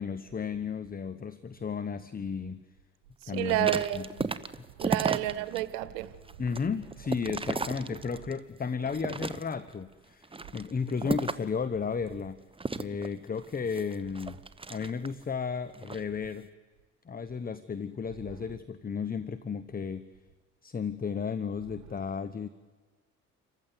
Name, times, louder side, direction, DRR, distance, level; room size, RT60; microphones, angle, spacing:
voice 1, 0.0-2.6 3.3-4.3 6.4-12.4 12.7-14.4 14.7-16.5 17.0-20.1 20.6-22.5, left 6 dB, 20° left, 1.0 m, -34 dB
voice 2, 3.3-4.0 4.8-6.1, right 14 dB, 70° right, 1.3 m, -29 dB
sound 1, 3.4-5.6 6.0-8.4 8.8-9.7 10.2-11.6 12.6-15.2 15.7-16.0, right 3 dB, 15° right, 1.1 m, -34 dB
28.0 x 15.5 x 9.6 m
hypercardioid pair, 55°, 40 cm